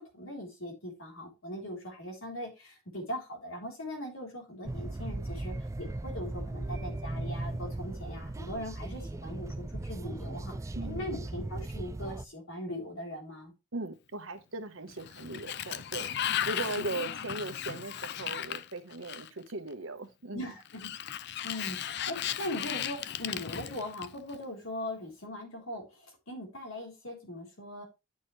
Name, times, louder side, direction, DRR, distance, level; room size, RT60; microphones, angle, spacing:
voice 1, 0.1-10.6 10.8-13.5 20.3-20.9 21.2-27.8, left 1 dB, 80° left, 3.6 m, -40 dB
sound 1, 4.7-12.3, right 2 dB, 15° right, 0.3 m, -37 dB
voice 2, 10.7-11.1 13.7-16.1 16.5-20.5, right 2 dB, 70° right, 1.1 m, -38 dB
Sliding door, 14.9-19.5 20.7-24.4, left 10 dB, 55° left, 0.5 m, -36 dB
9.4 x 6.4 x 3.2 m
head